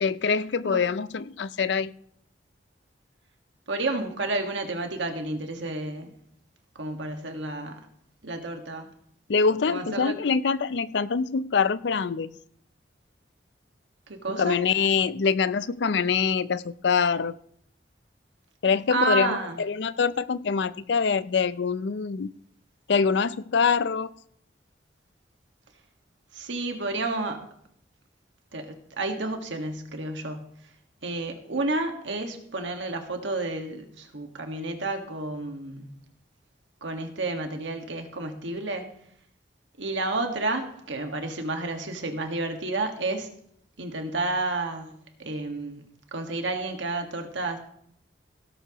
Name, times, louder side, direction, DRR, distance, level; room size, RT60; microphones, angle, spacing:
voice 1, 0.0-1.9 9.3-12.4 14.4-17.3 18.6-22.3 22.9-24.1, left 5 dB, 70° left, 16 dB, 0.5 m, -24 dB
voice 2, 3.7-6.1 6.7-7.8 8.2-8.9 9.7-10.2 14.1-14.6 18.9-19.6 26.3-27.5 28.5-30.5 31.0-35.9 36.8-38.8 39.8-43.3 43.8-44.9 45.2-45.8 46.1-47.6, right 2 dB, 80° right, 4 dB, 1.7 m, -30 dB
17.0 x 11.0 x 3.0 m, 0.69 s
head